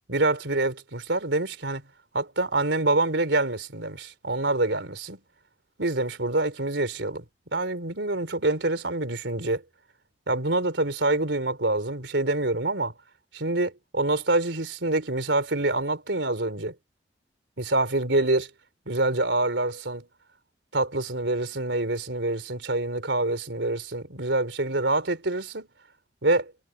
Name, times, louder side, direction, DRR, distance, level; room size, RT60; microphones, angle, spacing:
voice 1, 0.1-1.8 2.1-5.2 5.8-7.2 7.5-9.6 10.3-12.9 13.3-16.8 17.6-18.5 18.9-20.1 20.7-25.7 26.2-26.5, right 2 dB, 85° right, 3.7 m, -26 dB
head